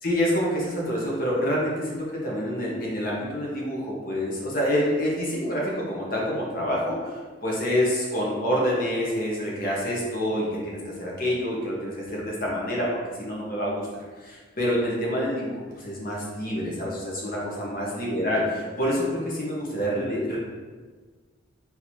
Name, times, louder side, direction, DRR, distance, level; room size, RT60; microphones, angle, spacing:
voice 1, 0.0-7.1 7.4-13.8 14.2-20.4, equal, 45° left, -4 dB, 1.0 m, -27 dB
3.8 x 2.7 x 4.6 m, 1.4 s
head